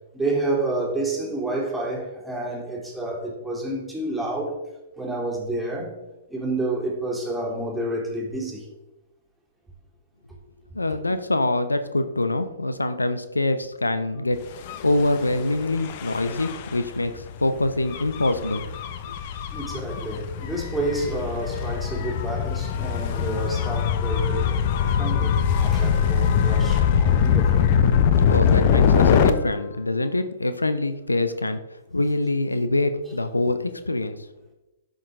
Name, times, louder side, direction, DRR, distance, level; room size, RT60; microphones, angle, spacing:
voice 1, 0.1-4.5 5.0-5.9 6.3-8.7 19.5-24.5 25.0-27.7, right 2 dB, 5° right, -3 dB, 2.8 m, -29 dB
voice 2, 10.7-14.4 14.8-18.6 28.3-31.6 31.9-34.2, left 2 dB, 85° left, 10 dB, 0.6 m, -24 dB
Gull seagull / Waves surf / Siren, 14.6-29.3, left 7 dB, 45° left, 0.8 m, -22 dB
12.0 x 6.4 x 3.7 m, 0.99 s
figure-of-eight pair, 110°, 0 cm